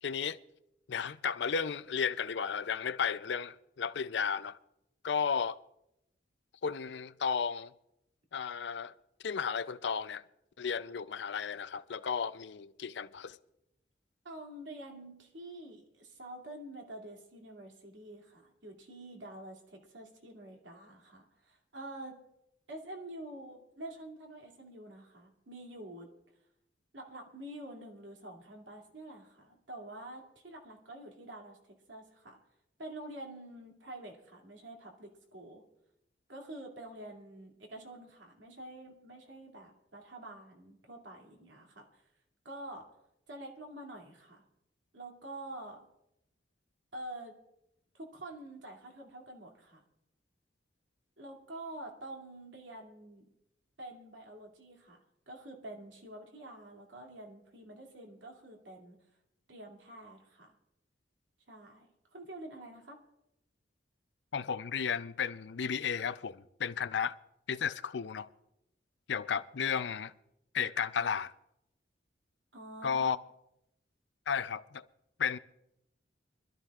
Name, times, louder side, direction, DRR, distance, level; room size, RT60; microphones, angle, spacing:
voice 1, 0.0-0.4 0.9-4.6 5.0-5.6 6.6-7.7 8.3-8.9 9.2-10.2 10.6-13.4 64.3-67.2 67.5-68.3 69.1-70.1 70.5-71.3 72.8-73.2 74.3-74.8 75.2-75.4, left 6 dB, 70° left, 0.5 m, -33 dB
voice 2, 14.2-22.2 22.7-26.1 26.9-32.4 32.8-35.6 36.3-42.0 42.4-42.9 43.3-44.5 44.9-45.8 46.9-47.3 47.9-49.8 51.2-53.3 53.8-55.0 55.3-59.0 59.5-60.5 61.5-63.0 72.5-73.1, right 1 dB, 80° right, 2.6 m, -47 dB
25.0 x 13.0 x 2.4 m
head